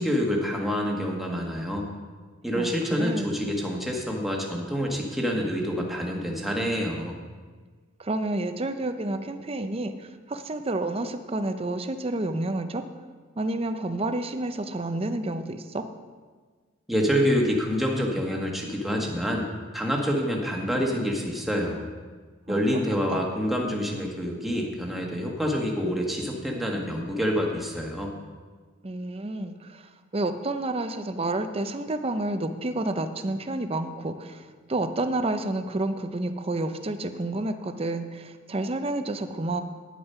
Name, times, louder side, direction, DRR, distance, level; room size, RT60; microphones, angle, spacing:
voice 1, 0.0-1.8 2.4-7.1 16.9-19.5 19.7-21.9 22.5-28.1, equal, ahead, -1 dB, 1.4 m, -27 dB
voice 2, 2.5-3.3 8.0-12.9 13.4-15.9 22.5-22.8 23.1-23.3 28.8-39.6, right 2 dB, 30° right, 8 dB, 0.6 m, -30 dB
9.9 x 8.7 x 5.6 m, 1.5 s
head